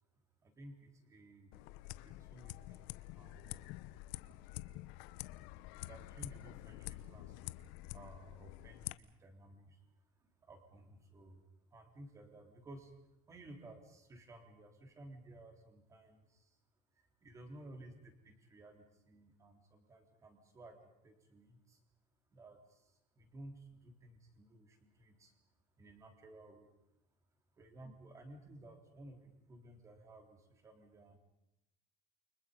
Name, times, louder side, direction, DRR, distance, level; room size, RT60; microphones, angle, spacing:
voice 1, 0.4-1.5 2.0-3.7 5.8-7.5 7.9-11.4 11.7-12.9 13.3-16.6 16.9-21.8 22.3-25.3 25.8-26.7 27.5-31.2, right 1 dB, 15° right, 5 dB, 3.7 m, -56 dB
sound 1, 1.5-8.9, left 17 dB, 60° left, 0.9 m, -48 dB
29.5 x 25.0 x 5.4 m, 0.86 s
cardioid pair, 175°, 18 cm